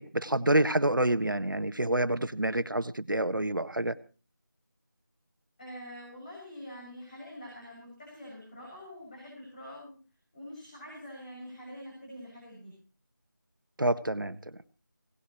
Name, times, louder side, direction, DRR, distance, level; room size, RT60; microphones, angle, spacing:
voice 1, 0.0-3.9 13.8-14.4, right 1 dB, 75° right, 12 dB, 1.4 m, -27 dB
voice 2, 5.6-10.0 10.3-12.7, equal, 20° left, -4 dB, 6.8 m, -45 dB
21.0 x 18.5 x 3.1 m, 0.35 s
figure-of-eight pair, 170°, 11 cm